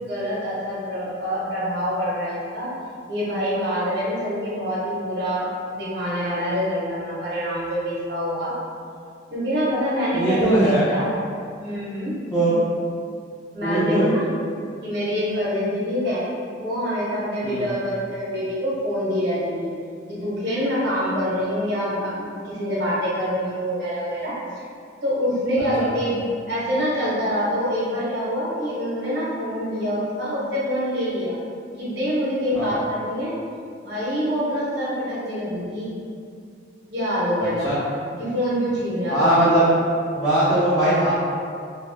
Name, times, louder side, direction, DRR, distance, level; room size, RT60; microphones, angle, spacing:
voice 1, 0.0-2.7 3.1-8.5 9.3-11.0 11.6-12.1 13.5-14.3 14.8-16.2 16.6-19.7 20.1-24.3 25.0-31.4 31.8-33.3 33.8-35.9 36.9-37.7 38.2-39.4, equal, 60° right, -7 dB, 0.9 m, -25 dB
voice 2, 10.1-10.8 12.3-12.5 13.6-14.1 17.4-17.7 25.8-25.9 32.5-32.7 37.4-37.8 39.1-39.6 40.1-41.1, right 1 dB, 20° left, -12 dB, 0.5 m, -20 dB
2.5 x 2.3 x 3.2 m, 2.3 s
head